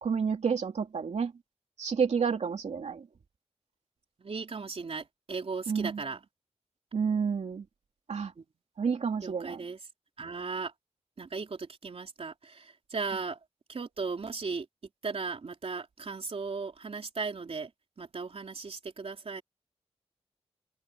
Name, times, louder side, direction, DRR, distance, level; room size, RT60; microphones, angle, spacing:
voice 1, 0.0-1.3 1.8-3.1 5.7-6.0 6.9-7.7 8.1-8.3 8.8-9.6, right 6 dB, 85° right, 2.8 m, -30 dB
voice 2, 4.2-6.2 8.4-8.5 9.2-9.8 10.2-10.7 11.2-13.4 13.7-14.7 15.0-17.7 18.0-19.4, right 4 dB, 60° right, 3.8 m, -37 dB
open air
wide cardioid pair, 90°, 11 cm